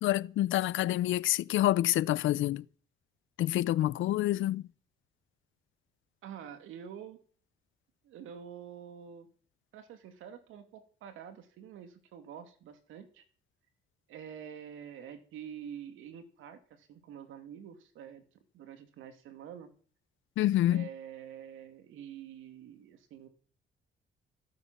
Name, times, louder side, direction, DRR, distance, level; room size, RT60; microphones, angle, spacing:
voice 1, 0.0-2.6 3.4-4.6 20.4-20.9, left 14 dB, 80° left, 0.6 m, -27 dB
voice 2, 6.2-7.2 8.0-9.3 9.7-13.3 14.1-18.2 18.5-19.7 20.7-23.3, right 8 dB, 85° right, 2.6 m, -47 dB
16.0 x 9.4 x 7.4 m
cardioid pair, 90°, 20 cm